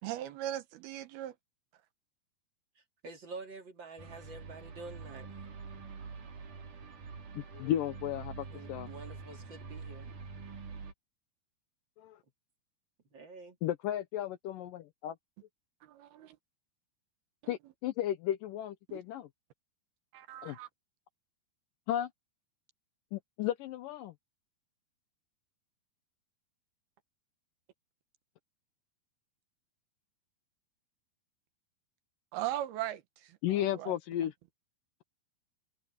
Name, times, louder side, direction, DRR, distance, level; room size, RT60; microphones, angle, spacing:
voice 1, 0.0-1.4 15.8-16.4 18.9-19.0 20.1-20.7 32.3-34.3, right 13 dB, 80° right, 3.1 m, -39 dB
voice 2, 3.0-5.3 8.4-10.1 13.1-13.6, right 3 dB, 35° right, 2.6 m, -47 dB
sound 1, 4.0-10.9, right 4 dB, 55° right, 4.5 m, -46 dB
voice 3, 7.3-8.9 13.6-15.2 17.5-19.3 20.4-20.6 21.9-22.1 23.1-24.1 33.4-34.3, left 12 dB, 75° left, 2.2 m, -34 dB
omnidirectional pair, 4.4 m